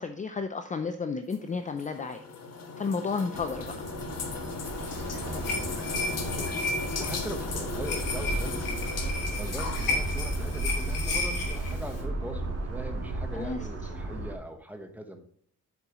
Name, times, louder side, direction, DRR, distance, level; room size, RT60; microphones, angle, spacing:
voice 1, 0.0-2.2 2.8-3.7 13.3-13.6, left 4 dB, 25° left, 8 dB, 0.4 m, -32 dB
sound 1, 1.3-10.9, left 4 dB, 50° left, 1.4 m, -37 dB
sound 2, 3.3-14.4, right 2 dB, 50° right, 2.5 m, -34 dB
voice 2, 3.9-4.4 5.2-8.9 9.4-15.2, right 1 dB, 5° right, 4 dB, 1.0 m, -41 dB
sound 3, 4.6-12.0, left 3 dB, 85° left, 2.6 m, -34 dB
8.4 x 7.0 x 3.0 m, 0.63 s
wide cardioid pair, 160°, 32 cm